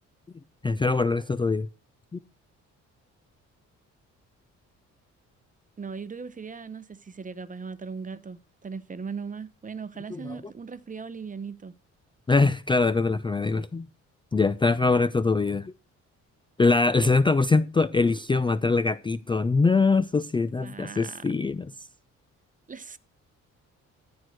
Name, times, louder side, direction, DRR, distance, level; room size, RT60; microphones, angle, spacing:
voice 1, 0.6-1.7 10.1-10.4 12.3-13.9 14.3-15.7 16.6-21.7, left 3 dB, 15° left, 0.4 m, -23 dB
voice 2, 5.8-11.7 20.6-21.3 22.7-23.0, right 5 dB, 25° right, 0.9 m, -38 dB
14.0 x 4.6 x 6.4 m
cardioid pair, 90°, 30 cm